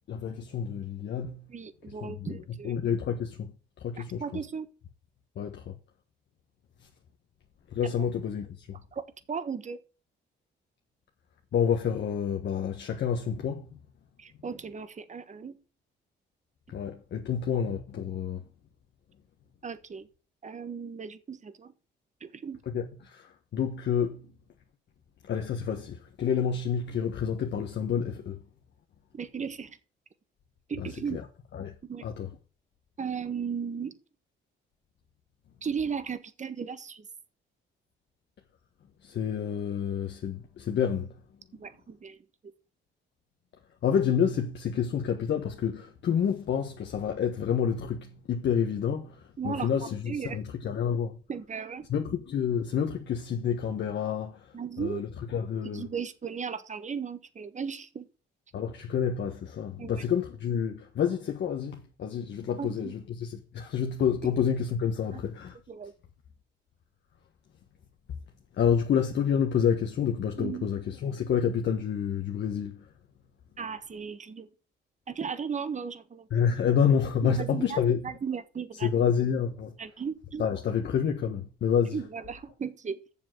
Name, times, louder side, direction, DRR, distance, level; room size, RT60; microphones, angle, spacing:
voice 1, 0.0-1.4 2.0-2.4 2.6-3.5 3.8-4.2 5.4-5.7 7.7-8.8 11.5-13.8 16.7-18.4 22.7-24.2 25.2-28.4 30.8-31.2 31.5-31.7 32.0-32.3 39.0-41.2 43.8-51.2 51.9-55.9 58.5-65.6 68.6-72.8 76.3-78.1 78.8-79.7 80.4-82.0, left 7 dB, 60° left, 1.4 m, -29 dB
voice 2, 1.5-2.8 4.0-4.7 8.9-9.8 14.2-15.6 19.6-20.1 20.4-21.7 22.2-22.6 29.1-29.8 30.7-31.2 31.8-32.0 33.0-33.9 35.6-37.0 41.6-42.2 49.4-50.4 51.3-51.9 54.5-55.0 55.7-58.1 59.8-60.0 62.6-62.9 65.1-65.2 65.7-65.9 70.4-70.7 73.6-74.5 75.1-76.3 77.2-78.9 79.8-80.5 81.9-83.0, right 6 dB, 35° right, 1.4 m, -36 dB
7.2 x 7.1 x 7.9 m
cardioid pair, 90°, 20 cm